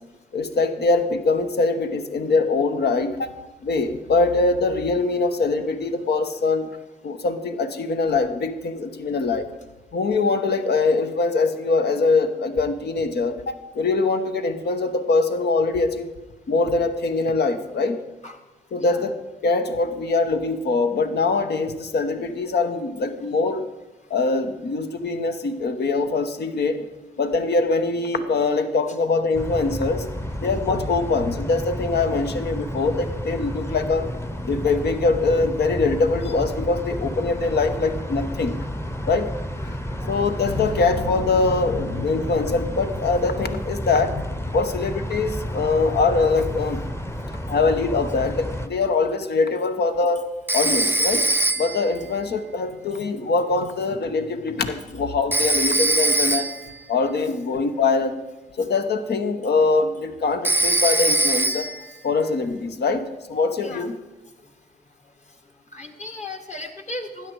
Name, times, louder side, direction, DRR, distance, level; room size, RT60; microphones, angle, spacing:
voice 1, 0.3-3.3 3.6-6.7 7.0-9.5 9.9-16.1 16.5-18.0 18.7-19.1 19.4-23.6 24.1-26.8 27.2-30.1 30.4-34.1 34.4-38.6 39.1-39.3 39.6-39.8 40.1-44.2 44.5-46.9 47.5-50.2 50.5-51.3 51.6-56.5 56.9-58.2 58.6-61.7 62.0-64.0, left 3 dB, 65° left, 8 dB, 1.1 m, -23 dB
sound 1, 29.3-48.7, equal, 15° left, 1.0 m, -31 dB
Telephone, 50.5-51.9 55.3-56.7 60.4-61.9, right 2 dB, 10° right, 0.6 m, -21 dB
voice 2, 65.7-67.3, left 2 dB, 40° left, 6 dB, 1.8 m, -35 dB
12.5 x 9.3 x 4.7 m, 1.1 s
supercardioid pair, 45°, 19 cm